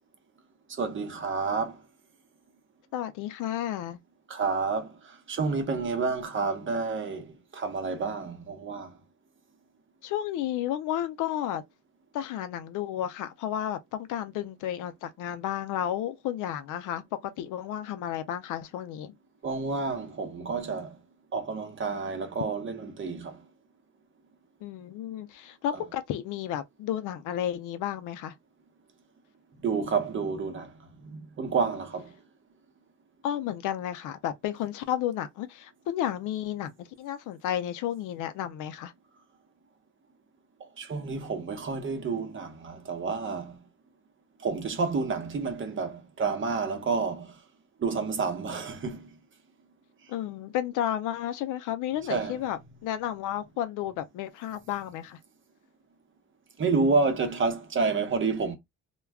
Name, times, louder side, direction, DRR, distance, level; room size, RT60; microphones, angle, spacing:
voice 1, 0.8-1.8 4.3-7.3 7.5-8.9 19.4-21.0 21.3-23.4 29.6-30.7 31.0-32.1 40.8-43.6 44.4-47.3 47.8-49.1 52.1-52.4 56.6-58.6, right 4 dB, 40° right, 0.8 m, -29 dB
voice 2, 2.9-4.0 10.0-11.6 12.1-19.1 24.6-28.3 33.2-38.9 50.1-55.2, left 11 dB, 85° left, 0.5 m, -32 dB
2.2 x 2.2 x 3.4 m
cardioid pair, 90°, 30 cm